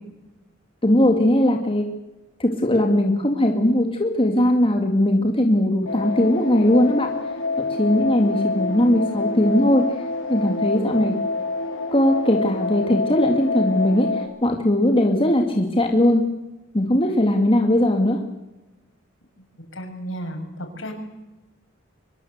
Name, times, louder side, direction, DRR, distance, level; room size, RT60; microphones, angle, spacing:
voice 1, 0.8-1.8 2.4-7.1 7.6-9.8 10.3-11.1 11.9-14.1 14.4-16.2 16.7-18.2, left 1 dB, 25° left, 3 dB, 2.2 m, -19 dB
sound 1, 5.9-14.2, left 3 dB, 90° left, 6.6 m, -27 dB
voice 2, 19.7-20.9, equal, 70° left, 4 dB, 7.2 m, -33 dB
24.0 x 23.5 x 8.1 m, 1.0 s
head